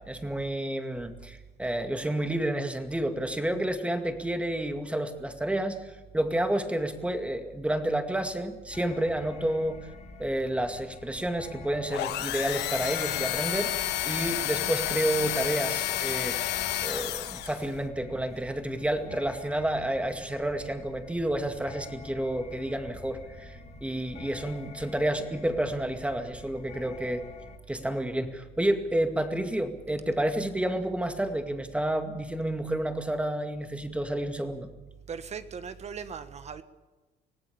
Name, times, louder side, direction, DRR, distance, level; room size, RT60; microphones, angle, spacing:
voice 1, 0.0-9.9 10.2-13.7 14.0-16.4 16.8-27.2 27.7-34.7, right 1 dB, 5° right, 2.2 m, -30 dB
sound 1, 8.7-27.6, left 4 dB, 40° left, 2.4 m, -48 dB
sound 2, 11.9-17.7, left 13 dB, 85° left, 1.4 m, -30 dB
voice 2, 35.1-36.6, right 6 dB, 40° right, 1.4 m, -38 dB
25.5 x 17.0 x 7.1 m
cardioid pair, 110°, 17 cm